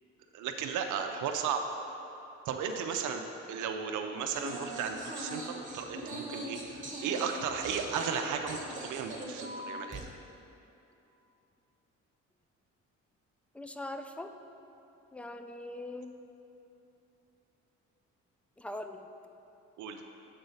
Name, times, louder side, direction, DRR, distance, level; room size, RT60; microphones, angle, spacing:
voice 1, 0.3-1.6 2.5-10.1 19.8-20.0, right 6 dB, 80° right, 4 dB, 0.5 m, -35 dB
sound 1, 4.3-10.0, right 1 dB, 25° right, 1.1 m, -41 dB
voice 2, 13.5-14.3 15.1-16.1 18.6-19.1, left 1 dB, 5° left, 7 dB, 0.3 m, -41 dB
7.6 x 4.1 x 5.5 m, 2.9 s
cardioid pair, 90°, 30 cm